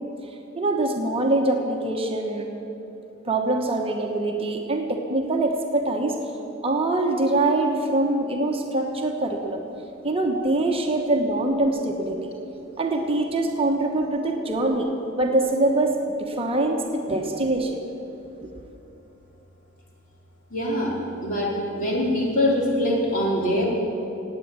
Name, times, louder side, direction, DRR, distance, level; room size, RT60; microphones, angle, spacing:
voice 1, 0.5-2.5 3.2-6.2 6.6-9.6 10.0-12.3 12.8-14.9 15.2-15.9 16.2-17.8 18.4-18.5, right 2 dB, 30° right, 2 dB, 1.2 m, -24 dB
voice 2, 20.5-23.6, left 1 dB, 45° left, -3 dB, 3.7 m, -24 dB
17.5 x 8.9 x 8.8 m, 2.9 s
head